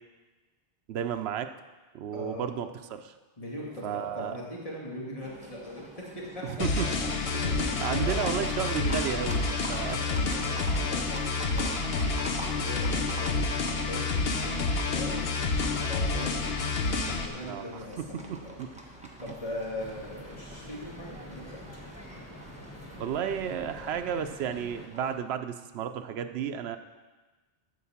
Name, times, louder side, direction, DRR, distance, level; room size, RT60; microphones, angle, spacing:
voice 1, 0.9-1.5 1.9-3.1 3.8-4.3 6.4-6.9 7.3-9.4 9.7-10.0 17.4-18.7 23.0-26.8, right 8 dB, 85° right, 7 dB, 0.8 m, -33 dB
voice 2, 2.1-2.6 3.4-6.9 7.4-8.5 9.8-15.4 15.9-18.5 19.2-21.6, left 1 dB, 35° left, -4 dB, 2.2 m, -41 dB
Livestock farm animals working animals, 5.2-25.1, equal, 5° right, 1.2 m, -45 dB
sound 1, 6.6-17.3, left 3 dB, 70° left, 1.1 m, -29 dB
sound 2, 19.8-24.9, left 1 dB, 15° left, 1.5 m, -47 dB
12.5 x 4.7 x 7.2 m, 1.3 s
omnidirectional pair, 1.1 m